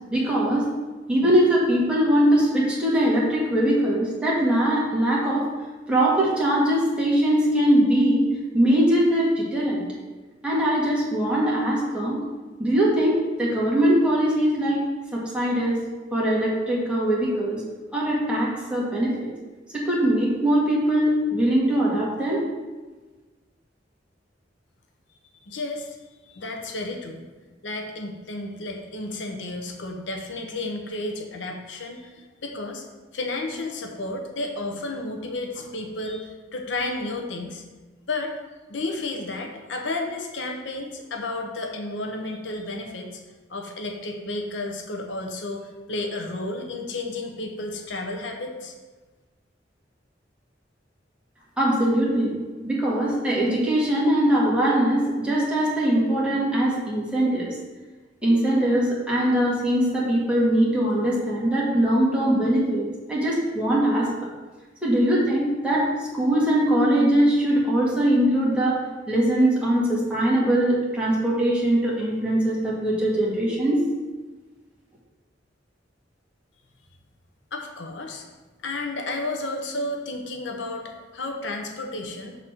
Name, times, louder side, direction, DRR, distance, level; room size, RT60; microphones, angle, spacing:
voice 1, 0.1-0.7 1.1-5.5 5.9-8.3 8.5-9.8 10.4-12.2 12.6-14.8 15.1-15.8 16.1-17.6 17.9-19.3 19.7-22.4 51.6-52.3 52.6-57.5 58.2-64.3 64.8-65.8 66.1-68.8 69.1-73.8, right 1 dB, 5° right, -6 dB, 1.8 m, -21 dB
voice 2, 25.5-26.0 26.3-27.2 27.6-32.9 33.1-37.6 38.1-38.3 38.7-43.2 43.5-48.7 77.5-78.2 78.6-82.4, left 2 dB, 85° left, 2 dB, 0.9 m, -32 dB
6.6 x 4.1 x 5.8 m, 1.3 s
head